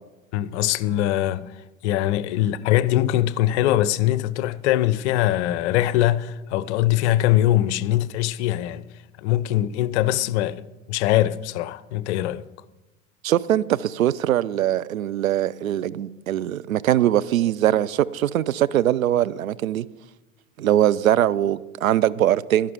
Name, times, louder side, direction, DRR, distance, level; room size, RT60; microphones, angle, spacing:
voice 1, 0.3-1.5 1.8-8.8 9.2-10.6 10.9-12.4, left 14 dB, 55° left, 0.6 m, -22 dB
voice 2, 13.2-19.9 20.6-22.7, right 12 dB, 80° right, 0.5 m, -21 dB
12.0 x 11.0 x 4.9 m
figure-of-eight pair, 75°, 41 cm